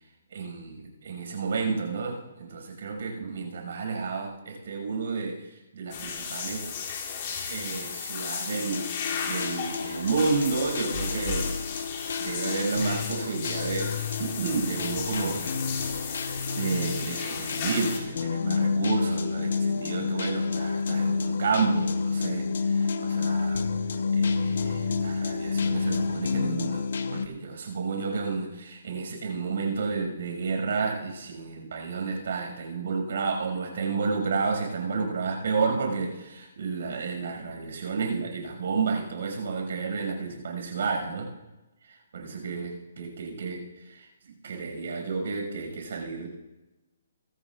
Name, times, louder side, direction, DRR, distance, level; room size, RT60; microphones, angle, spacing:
voice 1, 0.3-6.7 7.5-11.5 12.2-13.9 14.2-15.4 16.2-23.7 24.1-41.3 41.9-46.3, right 4 dB, 60° right, 2 dB, 5.8 m, -31 dB
sound 1, 5.9-18.0, left 6 dB, 35° left, 2.8 m, -34 dB
sound 2, 8.5-27.3, left 5 dB, 65° left, 1.0 m, -29 dB
24.0 x 14.0 x 2.5 m, 1.0 s
hypercardioid pair, 165°, 0 cm